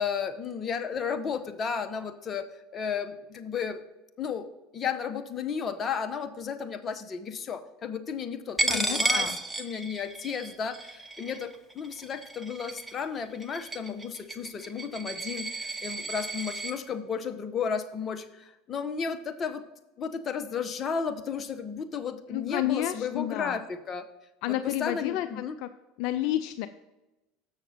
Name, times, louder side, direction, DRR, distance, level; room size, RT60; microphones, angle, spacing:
voice 1, 0.0-2.5 2.7-3.8 4.2-19.6 20.0-24.1 24.5-25.6, left 6 dB, 35° left, 9 dB, 0.8 m, -33 dB
Coin (dropping), 8.6-16.7, right 2 dB, 5° right, 0.9 m, -33 dB
voice 2, 8.7-9.4 22.3-23.6 24.4-25.7 26.0-26.7, left 13 dB, 65° left, 11 dB, 0.4 m, -30 dB
7.4 x 6.4 x 4.2 m, 0.98 s
supercardioid pair, 100°, 0 cm